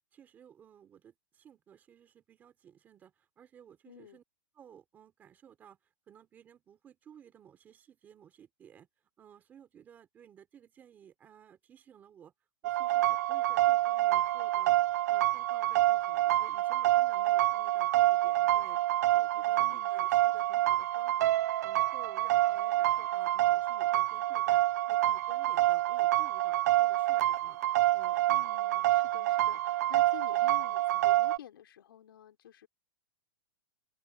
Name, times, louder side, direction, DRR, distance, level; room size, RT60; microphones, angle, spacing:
voice 1, 0.0-4.2 4.5-5.8 6.1-8.9 9.2-12.3 12.6-14.8 15.1-21.3 21.6-24.6 24.9-27.6 27.9-28.2, right 8 dB, 15° right, 3.5 m, -56 dB
voice 2, 3.8-4.2 19.6-19.9 28.3-32.7, left 10 dB, 70° left, 3.5 m, -50 dB
sound 1, 12.6-31.4, right 15 dB, 45° right, 0.4 m, -27 dB
hypercardioid pair, 170°, 12 cm